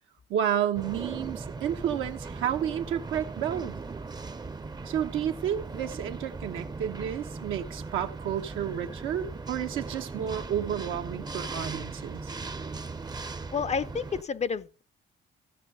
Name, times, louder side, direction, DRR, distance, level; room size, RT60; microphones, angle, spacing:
voice 1, 0.3-3.8 4.8-12.3, right 9 dB, 85° right, 1.1 m, -31 dB
sound 1, 0.7-14.2, right 3 dB, 20° right, 0.6 m, -38 dB
voice 2, 13.5-14.8, left 6 dB, 35° left, 0.5 m, -30 dB
15.0 x 5.6 x 5.4 m
cardioid pair, 90°, 20 cm